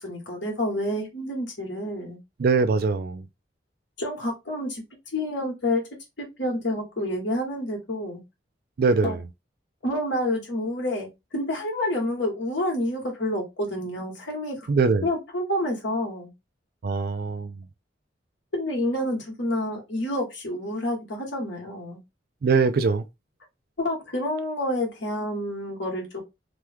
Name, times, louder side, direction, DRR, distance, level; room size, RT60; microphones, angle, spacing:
voice 1, 0.0-2.2 4.0-4.8 5.1-5.8 6.2-8.2 9.0-9.2 9.8-14.6 15.0-16.3 18.5-22.0 23.8-26.2, left 1 dB, 85° left, 1.3 m, -28 dB
voice 2, 2.4-3.2 8.8-9.2 14.7-15.1 16.8-17.5 22.4-23.0, right 4 dB, 55° right, 0.4 m, -22 dB
3.0 x 2.2 x 3.4 m
head